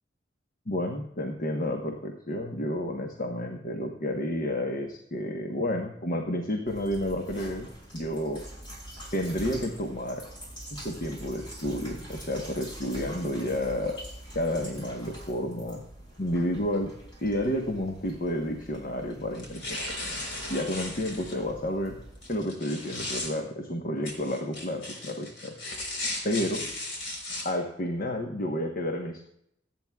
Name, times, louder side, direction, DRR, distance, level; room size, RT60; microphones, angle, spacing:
voice 1, 0.7-7.7 7.9-8.4 9.1-10.2 10.7-13.9 14.3-15.8 16.2-16.9 17.2-19.9 20.5-22.0 22.3-25.5 26.2-26.7 27.4-29.3, left 1 dB, 50° left, 3 dB, 1.1 m, -30 dB
sound 1, 6.6-22.4, right 1 dB, 25° left, 6.1 m, -45 dB
sound 2, 19.3-21.3 22.2-23.3 24.0-27.4, left 2 dB, 80° left, 4.1 m, -36 dB
26.0 x 9.0 x 2.3 m, 0.76 s
head